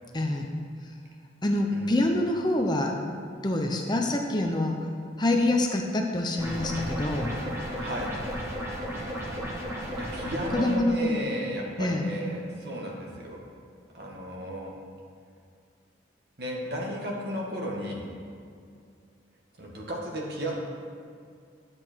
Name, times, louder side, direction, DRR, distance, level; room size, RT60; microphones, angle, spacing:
voice 1, 0.1-0.5 1.4-3.0 3.4-4.8 5.2-7.3 10.5-11.3 11.8-12.1, left 1 dB, 20° left, 2 dB, 0.7 m, -26 dB
sound 1, 6.4-10.8, equal, 15° right, 1.5 m, -34 dB
voice 2, 7.8-8.2 10.0-13.4 13.9-14.7 16.4-18.1 19.6-20.5, equal, 55° right, -2 dB, 1.9 m, -34 dB
11.5 x 7.9 x 4.6 m, 2.3 s
head